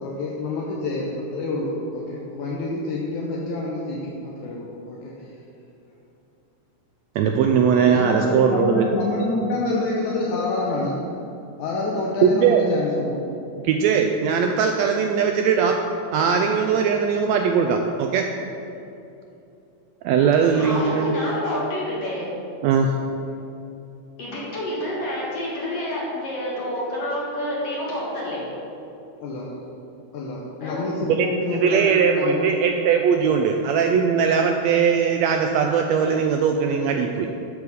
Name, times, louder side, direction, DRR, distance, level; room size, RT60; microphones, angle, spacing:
voice 1, 0.0-5.1 7.8-11.0 11.6-13.5 29.2-29.6 30.1-32.5, left 2 dB, 80° left, -3 dB, 2.3 m, -27 dB
voice 2, 7.2-8.9 12.2-12.7 13.6-15.8 16.1-18.3 20.0-21.1 22.6-22.9 31.2-31.3 31.6-37.3, right 6 dB, 80° right, 4 dB, 1.6 m, -20 dB
voice 3, 20.5-22.3 24.2-28.5 30.6-30.8, left 1 dB, 55° left, -6 dB, 2.5 m, -28 dB
12.5 x 4.9 x 5.3 m, 2.8 s
omnidirectional pair, 3.5 m